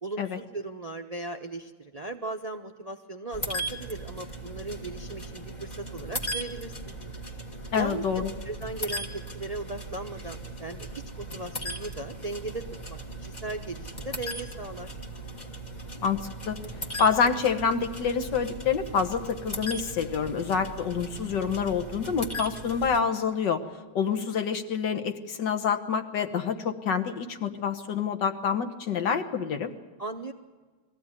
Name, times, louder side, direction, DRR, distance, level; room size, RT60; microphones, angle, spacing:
voice 1, 0.0-6.9 7.7-10.9 11.2-14.9 30.0-30.3, right 2 dB, 50° right, 5 dB, 0.4 m, -37 dB
sound 1, 3.3-23.0, right 1 dB, 25° left, 1.6 m, -38 dB
voice 2, 7.7-8.3 16.0-16.6 17.0-23.6 24.0-29.7, left 6 dB, 65° left, 7 dB, 1.9 m, -27 dB
22.0 x 15.5 x 9.8 m, 1.4 s
omnidirectional pair, 2.2 m